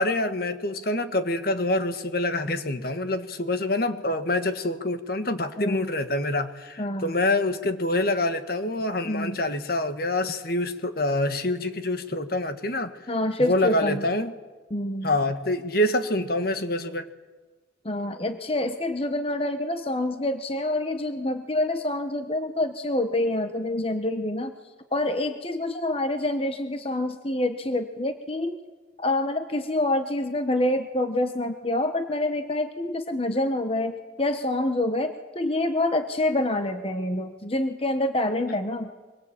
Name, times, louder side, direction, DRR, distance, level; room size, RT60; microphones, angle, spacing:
voice 1, 0.0-12.9 13.4-14.3 15.0-17.1, left 1 dB, 50° left, 9 dB, 1.5 m, -26 dB
voice 2, 5.6-5.9 6.8-7.1 9.0-9.4 13.1-14.1 14.7-15.2 17.8-24.5 24.9-28.6 29.0-38.9, left 1 dB, 30° left, 7 dB, 1.2 m, -27 dB
24.5 x 22.5 x 8.8 m, 1.3 s
head